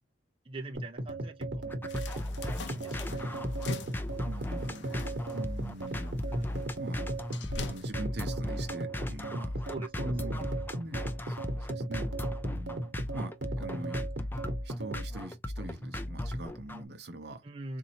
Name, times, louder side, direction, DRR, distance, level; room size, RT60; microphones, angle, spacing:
voice 1, 0.5-1.7 2.7-3.3 6.3-6.5 9.7-10.5 17.4-17.8, right 2 dB, 30° right, 0.6 m, -43 dB
sound 1, 0.7-15.1, right 1 dB, 90° right, 1.1 m, -37 dB
sound 2, 1.5-16.8, left 1 dB, 10° left, 0.4 m, -37 dB
sound 3, 1.9-7.9, left 3 dB, 80° left, 0.6 m, -44 dB
voice 2, 4.2-4.8 5.3-6.4 6.8-7.0 7.3-12.1 12.4-14.0 14.6-17.4, right 1 dB, 65° right, 0.8 m, -43 dB
4.0 x 2.7 x 2.8 m
head